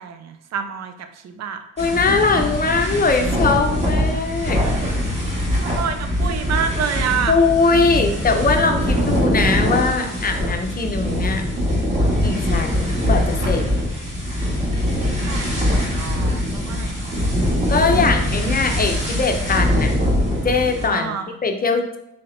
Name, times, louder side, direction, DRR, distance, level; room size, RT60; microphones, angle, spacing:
voice 1, 0.0-1.6 5.6-7.4 15.0-17.4 20.9-21.3, right 7 dB, 60° right, 8 dB, 0.5 m, -28 dB
voice 2, 1.8-4.6 7.3-11.4 12.2-13.7 17.7-20.0 20.4-22.0, left 4 dB, 30° left, 4 dB, 0.6 m, -21 dB
sound 1, 1.8-20.9, equal, 20° right, 1.5 m, -22 dB
5.5 x 3.3 x 2.6 m, 0.83 s
cardioid pair, 90°, 30 cm